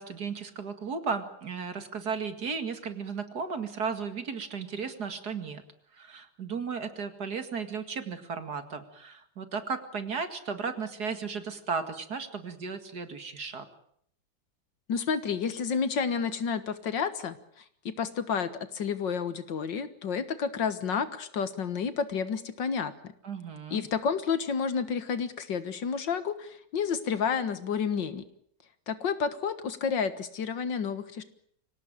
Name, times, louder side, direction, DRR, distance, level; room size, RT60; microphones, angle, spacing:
voice 1, 0.0-5.6 5.9-13.7 23.2-23.9, right 5 dB, 55° right, 8 dB, 2.6 m, -35 dB
voice 2, 14.9-23.1 23.7-28.2 28.9-31.2, left 6 dB, 65° left, 12 dB, 2.1 m, -30 dB
25.0 x 17.5 x 9.0 m, 0.66 s
omnidirectional pair, 2.1 m